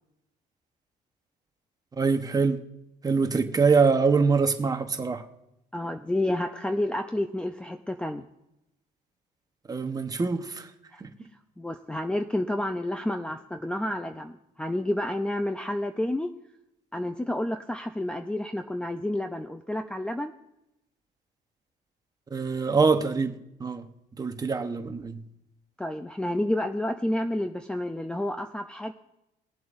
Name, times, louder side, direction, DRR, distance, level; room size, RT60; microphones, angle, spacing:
voice 1, 2.0-2.6 3.0-5.2 9.7-10.7 11.0-11.1 22.3-23.3 23.6-23.9 24.2-25.2, right 4 dB, 20° right, 7 dB, 1.0 m, -24 dB
voice 2, 5.7-8.2 10.9-11.0 11.6-14.3 14.6-16.3 16.9-20.3 25.8-28.9, left 1 dB, 5° left, 7 dB, 0.5 m, -30 dB
22.0 x 7.7 x 2.6 m, 0.85 s
cardioid pair, 110°, 17 cm